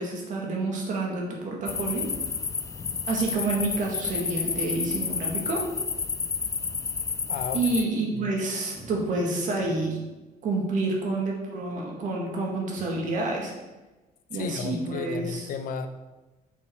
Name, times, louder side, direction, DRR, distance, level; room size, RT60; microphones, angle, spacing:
voice 1, 0.0-2.1 3.1-5.7 7.5-10.0 10.4-13.5 14.3-15.5, right 2 dB, 55° right, -1 dB, 2.1 m, -28 dB
sound 1, 1.7-7.8, left 5 dB, 20° left, 0.3 m, -30 dB
voice 2, 7.3-7.6 8.1-8.3 14.3-15.9, left 6 dB, 65° left, 9 dB, 0.7 m, -33 dB
sound 2, 8.7-10.2 12.8-13.3, right 1 dB, ahead, 2.4 m, -50 dB
7.1 x 6.5 x 4.5 m, 1.1 s
cardioid pair, 160°, 16 cm